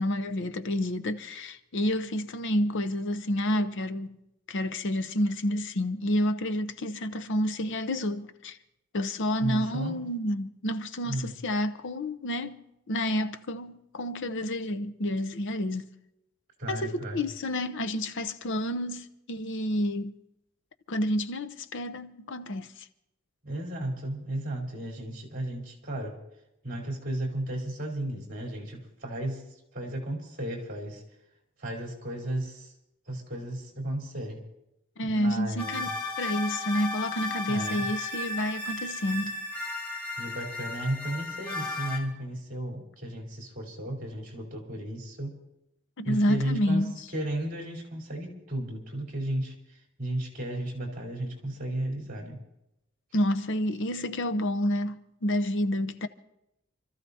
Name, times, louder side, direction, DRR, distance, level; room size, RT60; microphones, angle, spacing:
voice 1, 0.0-4.2 4.5-8.6 8.9-15.9 16.7-20.2 20.9-22.9 35.0-35.9 36.2-39.4 46.0-47.0 53.1-56.1, left 1 dB, 60° left, 0.7 m, -29 dB
voice 2, 9.4-10.0 11.1-11.3 16.6-17.2 23.4-26.2 26.6-29.5 29.7-31.0 31.6-32.7 33.1-34.5 35.0-35.9 37.5-37.9 40.2-45.4 46.0-46.8 47.1-52.4, right 1 dB, 40° right, 3.9 m, -34 dB
sound 1, 35.6-42.0, left 2 dB, 5° left, 2.8 m, -34 dB
29.0 x 14.0 x 2.8 m
head